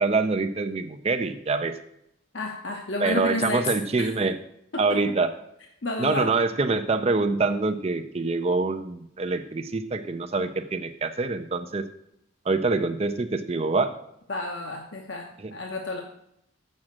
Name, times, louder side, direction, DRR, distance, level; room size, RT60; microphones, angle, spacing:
voice 1, 0.0-1.7 3.0-4.4 4.8-5.3 6.0-11.8 12.5-13.9 15.4-15.5, right 3 dB, 30° right, 8 dB, 0.4 m, -25 dB
voice 2, 2.3-3.6 4.0-4.1 4.9-5.0 5.8-6.3 14.3-15.2 15.5-16.0, left 2 dB, 60° left, 1 dB, 1.0 m, -30 dB
7.5 x 6.4 x 7.3 m, 0.78 s
head